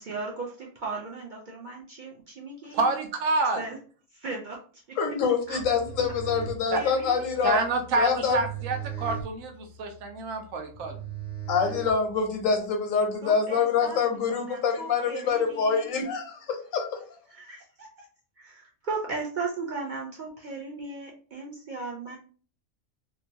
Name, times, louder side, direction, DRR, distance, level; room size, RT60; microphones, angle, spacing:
voice 1, 0.0-2.9 3.6-3.8 4.1-5.0 5.5-5.6 6.7-7.3 13.2-15.9 17.3-18.1 18.4-22.2, right 3 dB, 65° right, -1 dB, 0.4 m, -37 dB
voice 2, 2.7-3.6 6.7-6.8 7.4-11.0, right 3 dB, 90° right, 5 dB, 1.0 m, -28 dB
voice 3, 5.0-7.6 8.0-8.4 11.5-17.0, left 5 dB, 90° left, 4 dB, 1.1 m, -25 dB
sound 1, 5.5-12.5, right 7 dB, 40° left, 0.5 m, -39 dB
2.9 x 2.2 x 2.6 m, 0.42 s
omnidirectional pair, 1.3 m